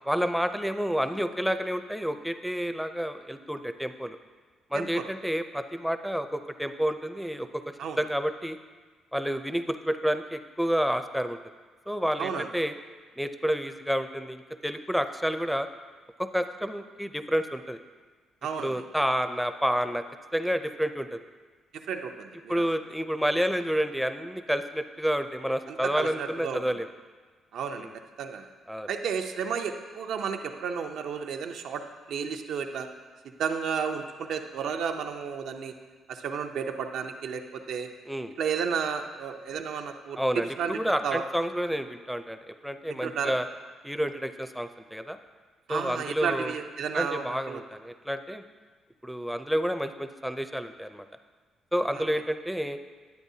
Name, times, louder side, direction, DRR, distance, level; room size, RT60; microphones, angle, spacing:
voice 1, 0.1-4.2 4.7-8.6 9.1-11.4 11.9-12.7 13.2-15.7 16.2-17.8 18.6-20.0 20.3-21.2 22.5-26.9 27.8-27.9 28.7-28.9 38.1-38.3 40.2-43.5 43.8-45.2 45.7-46.6 46.9-48.4 49.0-51.1 51.7-52.8, equal, ahead, 9 dB, 0.4 m, -29 dB
voice 2, 4.7-5.1 7.8-8.0 12.2-12.5 18.4-18.8 21.9-22.6 25.7-26.6 27.5-27.9 28.2-28.5 28.9-31.8 32.1-32.9 33.4-35.7 36.1-37.9 38.4-40.2 40.6-40.7 41.0-41.2 43.0-43.3 45.7-47.6 51.9-52.1, right 6 dB, 75° right, 5 dB, 0.6 m, -32 dB
10.5 x 8.0 x 2.7 m, 1.4 s
cardioid pair, 90°, 0 cm